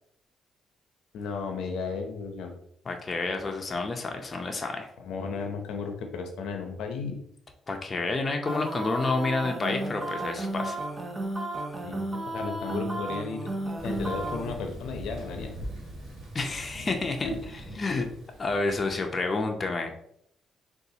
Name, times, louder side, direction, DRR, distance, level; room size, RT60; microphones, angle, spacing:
voice 1, 1.1-2.5 5.0-7.2 11.8-12.0 12.3-13.5 13.8-15.5 17.2-17.4, left 4 dB, 80° left, 4 dB, 0.5 m, -34 dB
voice 2, 2.9-4.9 7.7-10.8 16.3-17.3 17.8-18.1 18.4-19.9, left 3 dB, 35° left, 3 dB, 0.5 m, -29 dB
sound 1, 8.5-14.5, right 1 dB, 25° right, 0.6 m, -33 dB
Thunder, 13.8-19.2, right 1 dB, 60° right, 1.5 m, -42 dB
3.9 x 2.4 x 2.7 m, 0.71 s
cardioid pair, 90°, 0 cm